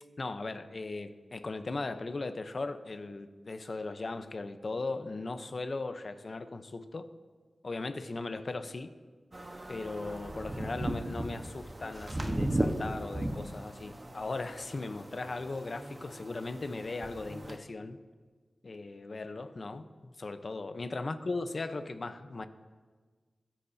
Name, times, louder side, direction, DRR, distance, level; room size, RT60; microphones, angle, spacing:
voice 1, 0.2-7.1 7.6-8.9 9.7-18.0 18.6-22.5, left 3 dB, 50° left, 9 dB, 0.8 m, -38 dB
sound 1, 9.3-17.6, right 1 dB, 30° right, 1.1 m, -37 dB
22.0 x 10.0 x 2.8 m, 1.4 s
wide cardioid pair, 75°, 0 cm